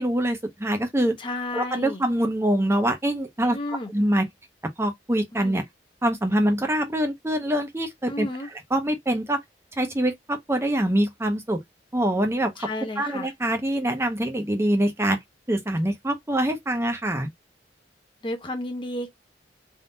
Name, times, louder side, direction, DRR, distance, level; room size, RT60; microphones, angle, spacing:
voice 1, 0.0-1.2 1.5-3.6 3.9-4.3 4.8-5.6 6.0-9.4 9.8-11.6 11.9-12.7 13.0-15.2 15.5-17.3, right 1 dB, 15° right, 0.7 m, -24 dB
voice 2, 1.2-2.0 3.5-3.9 5.4-5.6 8.1-8.5 12.6-13.3 18.2-19.1, left 1 dB, 30° left, 0.8 m, -32 dB
3.6 x 2.7 x 2.7 m
head